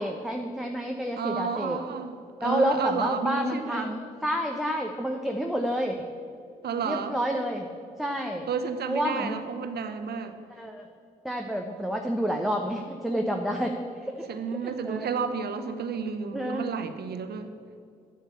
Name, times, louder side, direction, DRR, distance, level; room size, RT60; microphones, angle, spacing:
voice 1, 0.0-1.8 2.4-6.1 6.8-7.7 8.0-8.5 8.9-9.4 10.6-10.9 11.2-14.3 14.8-15.1 16.3-16.7, equal, ahead, 2 dB, 1.1 m, -29 dB
voice 2, 1.2-3.9 6.6-7.2 8.5-10.3 14.3-17.5, right 6 dB, 60° right, 9 dB, 1.0 m, -31 dB
9.3 x 6.4 x 8.4 m, 2.5 s
hypercardioid pair, 40°, 19 cm